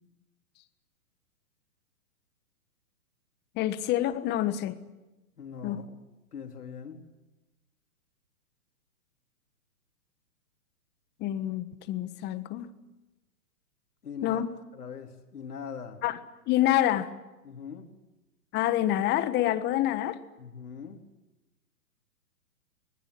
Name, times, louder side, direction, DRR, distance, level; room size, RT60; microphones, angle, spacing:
voice 1, 3.5-4.8 5.6-5.8 11.2-12.7 14.2-14.5 16.0-16.2 16.5-17.1 18.5-20.2, left 13 dB, 20° left, 13 dB, 1.4 m, -27 dB
voice 2, 5.4-5.8 6.3-7.0 14.0-14.4 14.7-16.0 17.4-17.9 20.4-21.0, left 7 dB, 70° left, 3 dB, 4.2 m, -41 dB
24.5 x 20.5 x 8.5 m, 1.0 s
hypercardioid pair, 130°, 47 cm